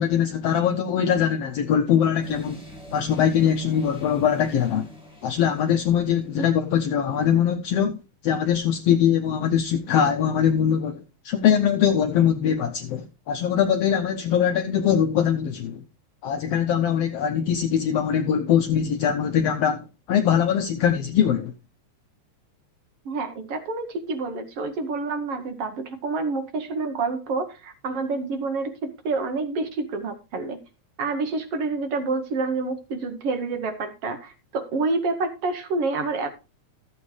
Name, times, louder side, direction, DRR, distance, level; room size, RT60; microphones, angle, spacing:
voice 1, 0.0-2.6 2.9-4.9 5.2-8.0 8.2-15.8 16.2-21.5, left 8 dB, 90° left, 1.4 m, -22 dB
sound 1, 2.2-6.6, right 2 dB, ahead, 5.8 m, -44 dB
voice 2, 23.1-30.6 31.0-36.3, right 3 dB, 65° right, 1.7 m, -28 dB
13.5 x 7.4 x 3.1 m
omnidirectional pair, 3.5 m